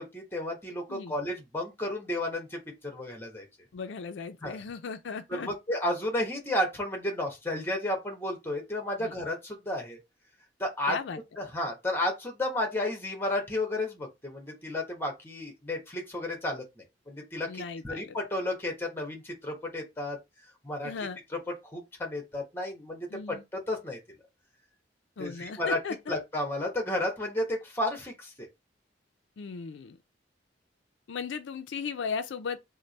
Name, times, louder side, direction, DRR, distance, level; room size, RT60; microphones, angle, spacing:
voice 1, 0.0-3.5 4.4-4.6 5.3-10.0 10.6-11.0 11.4-16.6 17.1-20.2 20.6-20.9 21.6-24.0 25.2-25.8 26.1-28.5, left 1 dB, 15° left, 1.0 m, -32 dB
voice 2, 3.7-5.5 9.0-9.1 10.9-11.2 17.5-18.2 20.8-21.2 23.1-23.4 25.2-26.1 29.4-30.0 31.1-32.6, left 5 dB, 80° left, 0.4 m, -36 dB
3.2 x 2.1 x 4.0 m
head